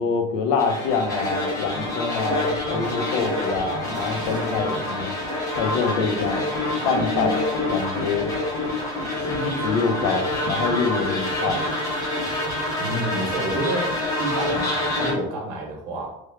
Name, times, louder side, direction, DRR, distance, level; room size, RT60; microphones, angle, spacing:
voice 1, 0.0-5.2 5.6-6.4 6.8-7.4 7.7-8.3 9.2-11.7, left 4 dB, 65° left, 5 dB, 0.6 m, -25 dB
sound 1, 0.6-15.1, left 1 dB, 20° left, 0.9 m, -27 dB
sound 2, 2.9-9.5, equal, 20° right, 0.6 m, -39 dB
voice 2, 12.8-16.1, right 1 dB, 75° right, 0 dB, 0.9 m, -29 dB
3.3 x 2.2 x 3.4 m, 0.84 s
cardioid pair, 165°, 18 cm